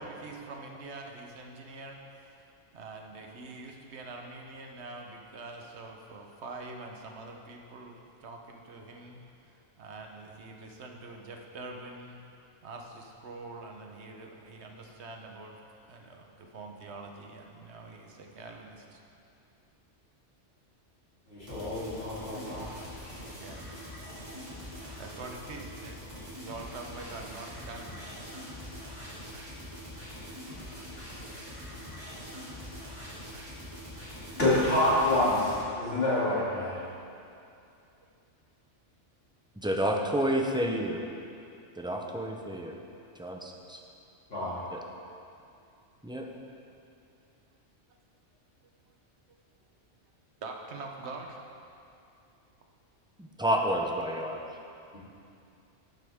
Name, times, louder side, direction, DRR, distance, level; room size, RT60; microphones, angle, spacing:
voice 1, 0.0-2.0 2.7-9.2 9.8-12.2 12.6-15.5 15.9-19.0 23.4-23.7 25.0-26.1 26.4-28.0 50.4-51.4, right 3 dB, 65° right, 2 dB, 1.2 m, -44 dB
voice 2, 21.3-22.7 34.4-36.7 44.3-44.6, left 1 dB, 55° left, -10 dB, 3.0 m, -27 dB
sound 1, 21.4-35.6, equal, 25° right, 2.4 m, -43 dB
voice 3, 39.6-41.0 41.8-42.8 43.2-43.8 44.7-44.8 46.0-46.3 53.4-54.5, equal, 5° right, 1 dB, 0.4 m, -29 dB
11.5 x 7.6 x 3.6 m, 2.6 s
omnidirectional pair, 1.3 m